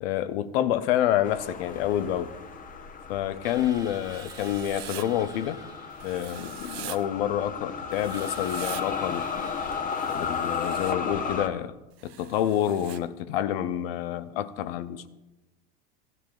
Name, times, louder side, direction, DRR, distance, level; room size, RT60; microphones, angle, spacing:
voice 1, 0.0-2.3 3.1-5.6 6.0-9.6 10.1-11.7 12.0-15.1, left 11 dB, 70° left, 0.7 m, -28 dB
sound 1, 1.2-11.5, left 6 dB, 25° left, 0.8 m, -34 dB
Drill, 3.4-6.1 8.1-10.6, right 4 dB, 10° right, 0.8 m, -49 dB
Writing, 4.0-5.1 6.0-7.0 7.9-8.8 9.9-10.9 12.0-13.0, right 13 dB, 80° right, 0.7 m, -43 dB
15.5 x 11.0 x 2.4 m
hypercardioid pair, 90°, 31 cm